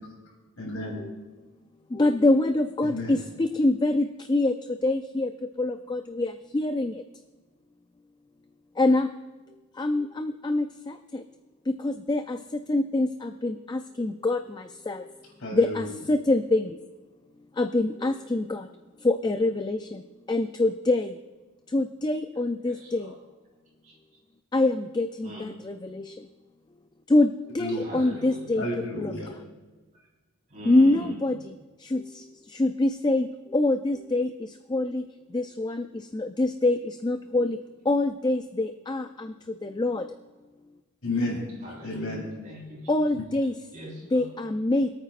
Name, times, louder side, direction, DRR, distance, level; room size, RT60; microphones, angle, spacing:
voice 1, 0.6-1.0 2.8-3.2 15.4-15.9 27.6-28.0 28.6-29.3 41.0-41.4 41.8-42.2 43.1-43.2, left 1 dB, 65° left, -3 dB, 3.8 m, -31 dB
voice 2, 1.9-4.6 4.8-5.3 5.6-7.0 8.8-9.1 9.8-11.2 11.7-12.4 12.7-15.0 15.5-16.8 17.6-18.7 19.0-20.0 20.3-21.1 21.7-23.1 24.5-26.2 27.1-28.7 29.0-29.1 30.7-31.4 31.8-32.2 32.5-35.1 35.3-37.6 37.9-39.3 39.6-40.1 42.0-42.1 42.9-43.6 44.1-44.9, left 2 dB, 20° left, 8 dB, 0.3 m, -25 dB
voice 3, 22.3-23.2 23.8-24.0 25.2-25.5 27.7-28.6 29.9-30.1 30.5-31.4 32.1-32.2 41.6-43.0 43.7-44.3, equal, 35° right, -4 dB, 4.1 m, -43 dB
26.0 x 9.0 x 2.5 m, 1.3 s
head